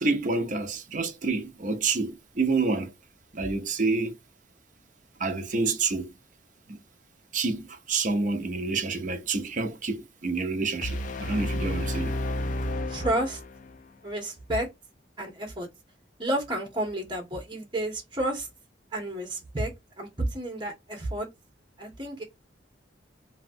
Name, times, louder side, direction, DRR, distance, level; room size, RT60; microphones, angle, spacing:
voice 1, 0.0-2.9 3.3-4.2 5.2-6.1 6.7-6.8 7.3-12.1, right 3 dB, 45° right, 0.6 m, -28 dB
sound 1, 10.8-13.8, left 1 dB, 45° left, 0.3 m, -31 dB
voice 2, 12.9-13.4 14.0-14.7 15.2-15.7 16.2-18.5 18.9-21.3 21.8-22.2, right 1 dB, 25° right, 1.3 m, -31 dB
3.1 x 2.7 x 2.4 m
head